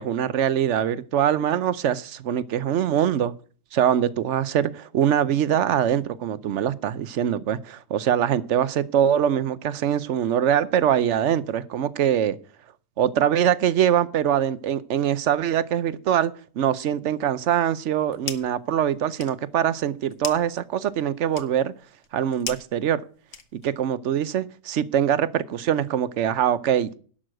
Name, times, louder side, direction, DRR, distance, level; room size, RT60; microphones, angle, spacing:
voice 1, 0.0-3.3 3.7-12.4 13.0-21.7 22.1-23.0 23.5-26.9, right 9 dB, 70° right, 17 dB, 1.0 m, -23 dB
sound 1, 17.8-18.6 18.9-23.8, left 7 dB, 75° left, 1.4 m, -39 dB
11.5 x 6.3 x 6.3 m, 0.42 s
omnidirectional pair, 1.3 m